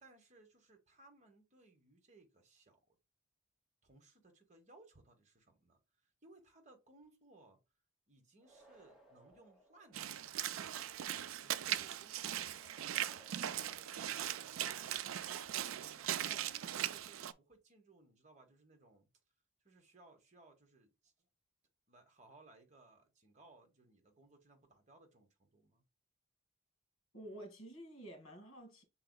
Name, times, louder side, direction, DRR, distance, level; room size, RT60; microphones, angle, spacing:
voice 1, 0.0-3.0 3.8-7.6 8.1-11.0 11.4-14.7 15.8-19.1 19.6-21.1 21.9-25.8, right 2 dB, 35° right, 1.1 m, -64 dB
sound 1, 8.4-10.5 12.6-14.7, right 1 dB, ahead, 1.3 m, -65 dB
Walk footsteps / Splash splatter, 9.9-17.3, right 11 dB, 75° right, 0.4 m, -39 dB
voice 2, 27.1-28.8, right 1 dB, 80° left, 2.0 m, -51 dB
5.7 x 3.9 x 2.3 m
head